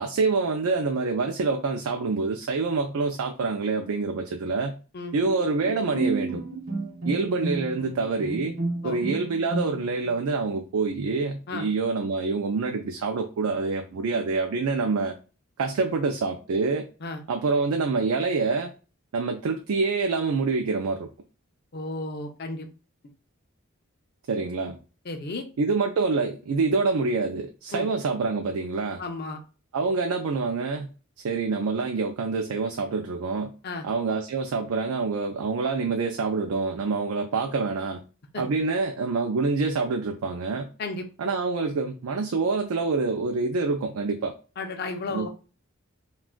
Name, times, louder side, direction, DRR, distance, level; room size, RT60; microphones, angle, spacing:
voice 1, 0.0-4.7 5.1-6.4 7.1-8.5 8.8-15.1 15.6-16.8 17.3-18.7 19.1-21.1 24.3-24.8 25.6-29.0 29.7-30.9 31.2-33.5 33.8-38.0 38.4-40.7 41.2-44.3 45.1-45.3, right 4 dB, 80° right, 4 dB, 0.4 m, -26 dB
Bowed string instrument, 5.2-10.1, right 3 dB, 65° right, 0.8 m, -31 dB
voice 2, 21.7-22.7 25.1-25.4 27.7-27.9 29.0-29.4 33.6-33.8 38.3-38.4 40.8-41.0 44.6-45.3, left 3 dB, 50° left, 6 dB, 0.5 m, -33 dB
2.4 x 2.3 x 3.6 m, 0.34 s
head